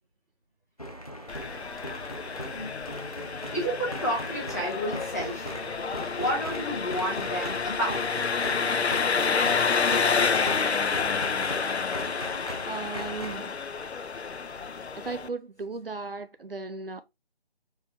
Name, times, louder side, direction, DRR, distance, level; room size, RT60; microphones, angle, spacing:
sound 1, 0.8-13.4, equal, 35° left, 0.6 m, -39 dB
Engine, 1.3-15.3, left 5 dB, 90° left, 0.7 m, -29 dB
voice 1, 2.5-5.5 6.2-8.4, equal, 15° left, 1.3 m, -32 dB
voice 2, 12.7-13.6 14.9-17.0, right 3 dB, 60° right, 0.5 m, -36 dB
4.4 x 3.4 x 3.1 m
figure-of-eight pair, 180°, 32 cm